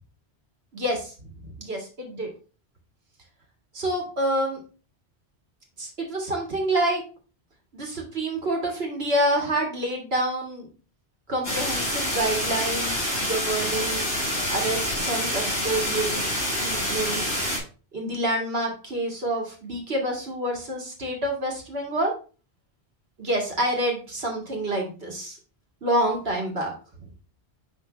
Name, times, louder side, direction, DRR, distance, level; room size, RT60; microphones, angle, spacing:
voice 1, 0.7-1.1 1.6-2.3 3.7-4.6 5.8-7.0 7.7-10.7 11.3-14.1 14.5-17.2 17.9-22.1 23.2-25.4 25.8-26.7, right 1 dB, 65° right, 0 dB, 2.1 m, -27 dB
sound 1, 11.4-17.6, equal, 40° left, 4.0 m, -27 dB
10.0 x 3.6 x 3.3 m, 0.36 s
omnidirectional pair, 1.1 m